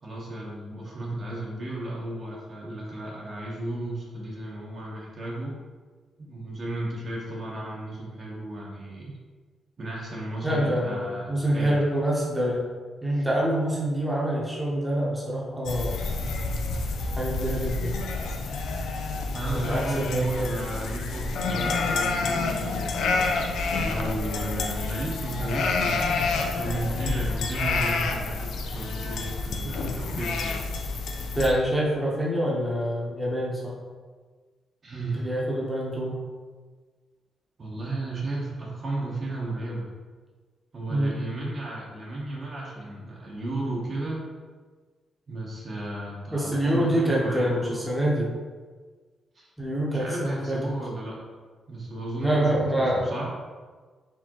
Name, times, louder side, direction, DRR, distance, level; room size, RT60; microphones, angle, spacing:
voice 1, 0.0-5.6 6.2-9.2 9.8-11.8 13.1-13.3 19.3-23.5 23.8-30.6 34.8-35.3 37.6-39.9 40.7-44.3 45.3-47.8 49.3-49.5 49.9-51.2 51.7-53.3, right 2 dB, 40° right, -4 dB, 0.9 m, -34 dB
voice 2, 10.4-12.7 13.0-16.0 17.2-17.9 19.5-20.5 21.6-21.8 29.6-30.0 31.3-33.8 35.1-36.2 40.9-41.3 46.3-48.3 49.6-50.6 52.2-53.1, right 1 dB, ahead, -6 dB, 1.0 m, -26 dB
sound 1, 15.7-31.5, left 3 dB, 80° left, 0.5 m, -28 dB
4.5 x 3.5 x 2.9 m, 1.4 s
cardioid pair, 120°, 0 cm